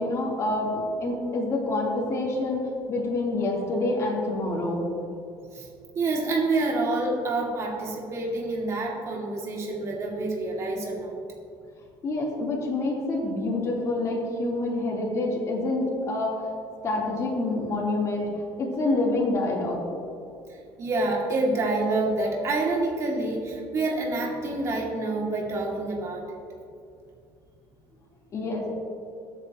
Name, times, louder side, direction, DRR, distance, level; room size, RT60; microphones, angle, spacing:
voice 1, 0.0-4.8 12.0-16.4 16.8-18.3 18.6-19.8 28.3-28.7, left 2 dB, 40° left, -3 dB, 3.5 m, -27 dB
voice 2, 5.9-11.2 20.8-26.4, right 2 dB, 40° right, -2 dB, 2.5 m, -27 dB
21.5 x 9.4 x 3.1 m, 2.5 s
cardioid pair, 120°, 8 cm